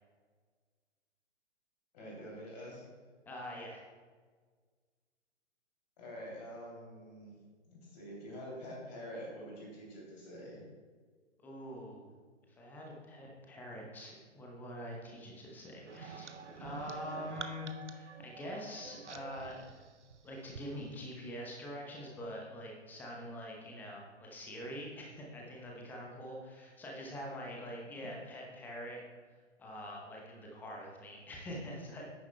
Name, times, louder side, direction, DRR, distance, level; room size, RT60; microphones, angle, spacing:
voice 1, 1.9-2.8 6.0-7.3 7.7-10.6 27.3-27.6 27.9-28.1, equal, 35° left, -4 dB, 2.9 m, -46 dB
voice 2, 3.3-3.8 11.4-12.1 12.6-19.6 20.2-29.0 29.6-32.2, left 1 dB, 5° left, -2 dB, 0.8 m, -45 dB
sound 1, 15.9-20.7, right 5 dB, 70° right, 0.8 m, -47 dB
11.5 x 9.6 x 2.2 m, 1.5 s
figure-of-eight pair, 125°, 36 cm